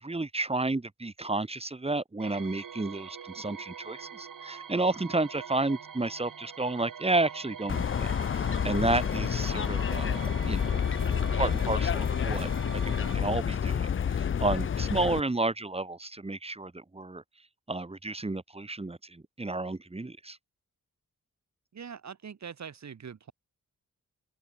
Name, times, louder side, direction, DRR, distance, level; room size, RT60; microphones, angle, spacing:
voice 1, 0.0-10.8 11.4-17.2 17.7-20.4, right 2 dB, 15° right, 1.6 m, -31 dB
sound 1, 2.2-13.2, right 7 dB, 70° right, 2.6 m, -44 dB
sound 2, 7.7-15.2, left 7 dB, 40° left, 0.5 m, -29 dB
voice 2, 21.7-23.3, right 7 dB, 55° right, 1.6 m, -43 dB
wide cardioid pair, 140°, 34 cm